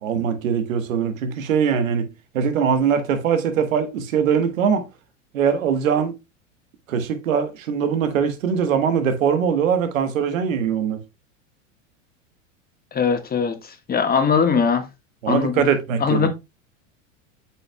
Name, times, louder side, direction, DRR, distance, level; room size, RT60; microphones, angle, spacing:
voice 1, 0.0-2.1 2.3-4.8 5.3-6.1 6.9-11.0 15.2-16.3, right 7 dB, 90° right, 1.3 m, -21 dB
voice 2, 12.9-14.8 15.3-15.6 16.0-16.3, left 6 dB, 25° left, 1.4 m, -21 dB
8.2 x 5.7 x 2.2 m
hypercardioid pair, 105°, 39 cm